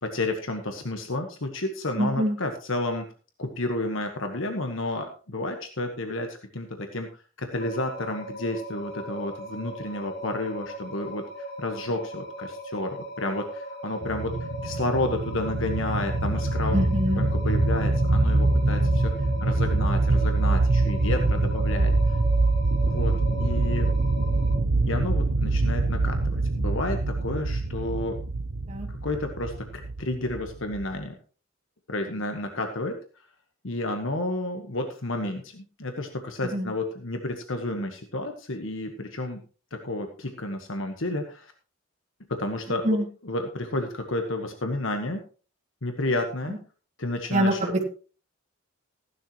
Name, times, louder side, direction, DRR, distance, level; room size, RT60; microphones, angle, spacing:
voice 1, 0.0-3.0 3.4-16.8 17.2-22.2 22.8-23.9 24.8-28.2 28.9-31.1 31.9-33.0 33.6-39.4 39.7-41.5 42.3-43.0 43.2-45.2 45.8-46.6 47.0-47.7, left 2 dB, 70° left, 5 dB, 1.5 m, -31 dB
voice 2, 2.0-2.4 16.7-17.2 28.7-28.9 36.4-36.7 42.8-43.0 46.5-46.6 47.3-47.8, equal, 35° right, 1 dB, 2.7 m, -25 dB
sound 1, 7.5-24.5, equal, 50° left, 7.9 m, -39 dB
sound 2, 14.0-31.0, right 2 dB, 70° right, 0.9 m, -24 dB
15.5 x 11.5 x 3.1 m, 0.37 s
head